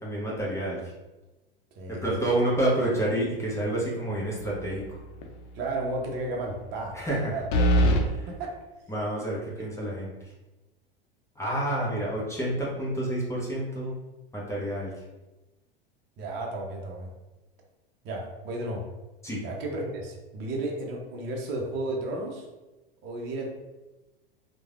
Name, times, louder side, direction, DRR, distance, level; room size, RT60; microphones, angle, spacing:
voice 1, 0.0-0.8 1.9-5.0 6.9-7.3 8.0-8.1 8.9-10.1 11.4-13.9 14.3-14.9 19.2-19.4, right 1 dB, 10° left, -5 dB, 0.7 m, -28 dB
voice 2, 1.8-2.1 5.5-7.5 8.3-8.6 9.6-9.7 16.2-17.1 18.0-18.8 19.4-22.4 23.0-23.5, right 2 dB, 40° right, -1 dB, 0.7 m, -33 dB
sound 1, 4.4-4.9 5.2-5.3 7.5-8.0, equal, 60° left, 0.6 m, -22 dB
3.1 x 2.2 x 2.4 m, 1.1 s
hypercardioid pair, 95°, 29 cm